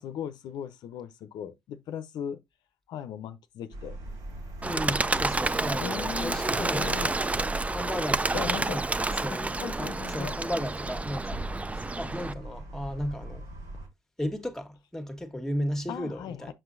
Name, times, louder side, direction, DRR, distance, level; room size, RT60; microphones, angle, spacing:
voice 1, 0.0-2.4 2.9-4.0 5.8-7.1 8.3-8.8 9.3-10.4 15.9-16.5, left 8 dB, 75° left, 0.6 m, -38 dB
sound 1, 3.7-13.9, right 1 dB, 90° right, 3.7 m, -39 dB
voice 2, 4.6-7.1 7.7-8.8 9.2-9.5 9.8-11.4 11.7-13.4 14.2-16.5, equal, 5° left, 1.5 m, -34 dB
Bird, 4.6-12.3, right 2 dB, 20° right, 0.5 m, -30 dB
6.3 x 6.1 x 2.5 m
supercardioid pair, 60°, 7 cm